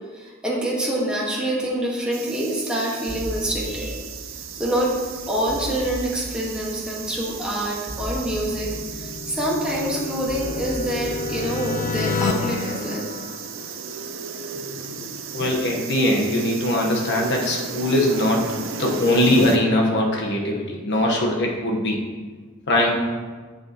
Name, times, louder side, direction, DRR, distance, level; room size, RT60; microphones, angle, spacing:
voice 1, 0.1-4.0 4.5-4.9 5.3-13.1, right 1 dB, 5° right, -5 dB, 1.5 m, -26 dB
sound 1, 2.1-19.6, right 6 dB, 70° right, 0.6 m, -35 dB
sound 2, 3.1-12.6, equal, 20° right, 1.5 m, -37 dB
sound 3, 8.2-14.0, left 4 dB, 40° left, 0.4 m, -30 dB
voice 2, 15.3-18.5 18.8-22.0 22.7-22.9, left 1 dB, 60° left, 0 dB, 1.1 m, -21 dB
8.1 x 6.9 x 2.9 m, 1.5 s
head